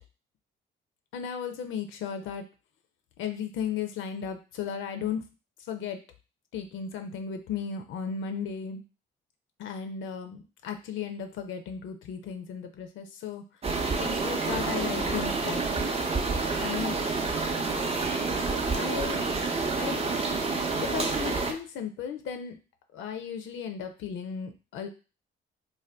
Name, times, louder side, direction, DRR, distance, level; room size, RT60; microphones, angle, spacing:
voice 1, 1.1-2.4 3.2-5.2 5.7-6.0 6.5-8.8 9.6-13.4 14.0-15.6 16.6-17.0 18.8-19.2 19.8-20.0 20.8-22.6 22.9-24.9, left 7 dB, 80° left, 6 dB, 0.5 m, -35 dB
sound 1, 13.6-21.5, right 3 dB, 30° right, 0.5 m, -28 dB
2.6 x 2.2 x 3.3 m, 0.33 s
cardioid pair, 90°, 20 cm